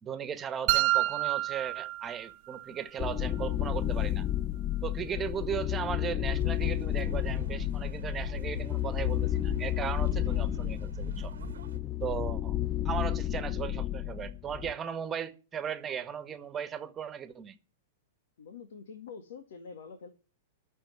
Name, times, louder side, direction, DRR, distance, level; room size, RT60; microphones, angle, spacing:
voice 1, 0.0-4.3 4.8-11.3 12.0-12.6 12.8-17.6, right 8 dB, 20° right, 1.5 m, -37 dB
sound 1, 0.7-2.7, right 18 dB, 50° right, 0.7 m, -28 dB
sound 2, 3.0-14.7, left 13 dB, 25° left, 0.6 m, -31 dB
sound 3, 6.2-11.8, right 8 dB, 85° right, 1.3 m, -44 dB
voice 2, 18.4-20.1, left 5 dB, 75° left, 2.0 m, -46 dB
12.5 x 6.6 x 9.7 m
hypercardioid pair, 125°, 0 cm